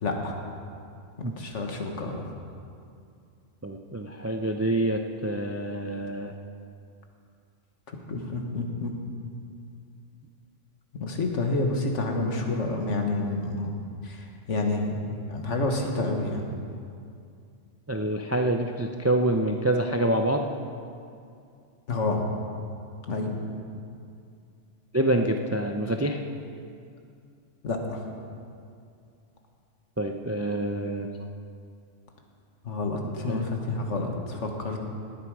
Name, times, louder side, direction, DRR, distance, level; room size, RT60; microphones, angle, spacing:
voice 1, 0.0-0.3 1.2-2.2 8.1-8.9 10.9-13.7 14.0-16.5 21.9-22.2 23.1-23.3 27.6-28.0 32.6-34.8, left 2 dB, 70° left, 2 dB, 1.8 m, -29 dB
voice 2, 3.6-6.3 17.9-20.5 24.9-26.2 30.0-31.1 33.3-33.4, right 1 dB, 25° right, 4 dB, 0.3 m, -26 dB
18.5 x 9.4 x 4.8 m, 2.4 s
omnidirectional pair, 1.3 m